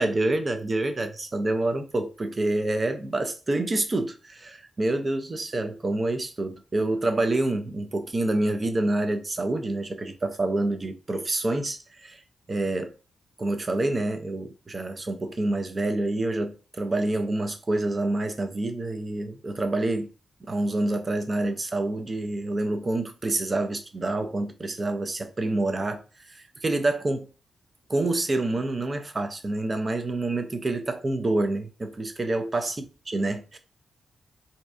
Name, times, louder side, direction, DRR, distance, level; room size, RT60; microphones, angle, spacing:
voice 1, 0.0-12.2 12.5-12.9 13.4-20.1 20.5-27.3 27.9-32.8 33.1-33.6, right 2 dB, 35° right, 0.4 m, -27 dB
2.6 x 2.1 x 2.4 m
cardioid pair, 70°, 0 cm